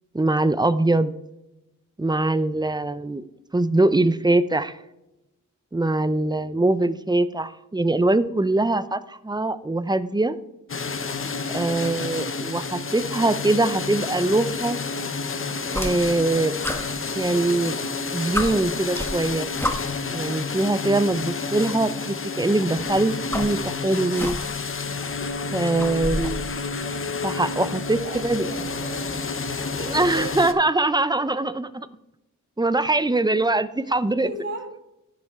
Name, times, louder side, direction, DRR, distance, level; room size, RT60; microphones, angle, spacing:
voice 1, 0.1-1.1 2.0-3.2 3.5-4.7 5.7-10.4 11.5-14.8 15.7-16.5 17.1-17.8 18.1-19.5 20.1-24.4 25.5-26.4 27.2-28.5 29.8-31.9 32.6-34.3, right 2 dB, 15° right, 13 dB, 0.5 m, -22 dB
sound 1, 10.7-30.5, left 4 dB, 40° left, 0.7 m, -30 dB
sound 2, 15.7-16.3 16.6-17.7 18.0-18.1 18.3-20.1 21.1-21.2 22.6-24.7 25.0-26.4, left 1 dB, 5° left, 1.1 m, -31 dB
voice 2, 27.2-29.1 29.6-30.3 33.8-34.0 34.2-34.7, right 2 dB, 35° right, -8 dB, 2.9 m, -37 dB
14.5 x 5.4 x 3.6 m, 0.91 s
wide cardioid pair, 75°, 32 cm